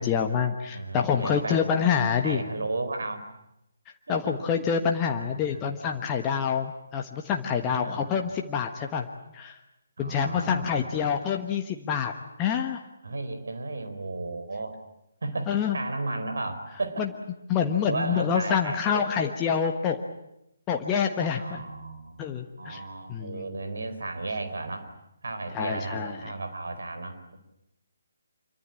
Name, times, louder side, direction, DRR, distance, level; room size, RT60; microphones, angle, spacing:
voice 1, 0.0-2.4 4.1-9.1 9.3-9.6 10.0-12.1 12.4-12.8 15.5-15.8 17.0-17.1 17.5-20.0 20.7-21.6 22.2-22.8 23.1-23.5 25.5-26.2, left 7 dB, 15° left, 3 dB, 1.4 m, -27 dB
voice 2, 0.7-1.6 2.2-3.2 4.1-4.3 5.5-5.6 7.6-8.0 10.0-11.0 13.0-14.7 15.2-17.1 17.8-19.3 21.3-24.9 25.2-27.4, right 3 dB, 60° right, 8 dB, 4.5 m, -34 dB
26.5 x 23.5 x 8.9 m, 0.85 s
figure-of-eight pair, 140°, 0 cm